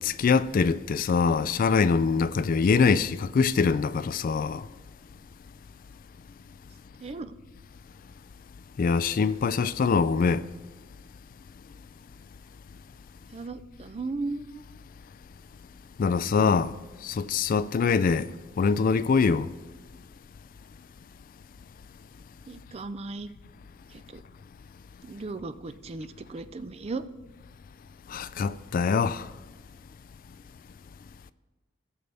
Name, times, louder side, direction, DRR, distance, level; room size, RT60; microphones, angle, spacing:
voice 1, 0.0-4.6 8.8-10.4 16.0-16.7 17.0-18.3 18.6-19.5 28.1-29.2, left 5 dB, 45° left, 0.3 m, -23 dB
voice 2, 7.0-7.3 13.3-14.6 22.5-23.3 24.1-24.2 25.0-27.0, right 3 dB, 30° right, 0.4 m, -36 dB
16.5 x 6.8 x 3.4 m
head